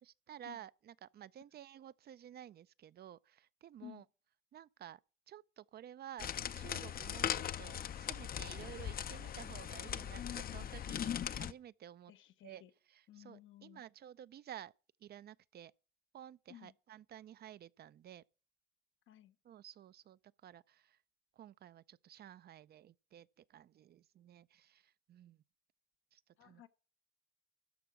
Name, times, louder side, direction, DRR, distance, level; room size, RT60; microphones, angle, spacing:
voice 1, 0.0-4.0 4.5-5.0 5.3-10.2 10.5-12.1 12.4-12.6 12.9-14.7 15.0-15.7 16.1-18.2 19.4-21.0 21.4-25.4 26.1-26.7, right 11 dB, 55° right, 0.4 m, -53 dB
sound 1, 6.2-11.5, left 9 dB, 50° left, 0.6 m, -40 dB
voice 2, 10.0-10.7 12.1-12.7 13.1-13.8 16.5-16.7 19.1-19.3 26.4-26.7, left 11 dB, 80° left, 0.9 m, -53 dB
13.0 x 4.6 x 7.2 m
cardioid pair, 90°, 20 cm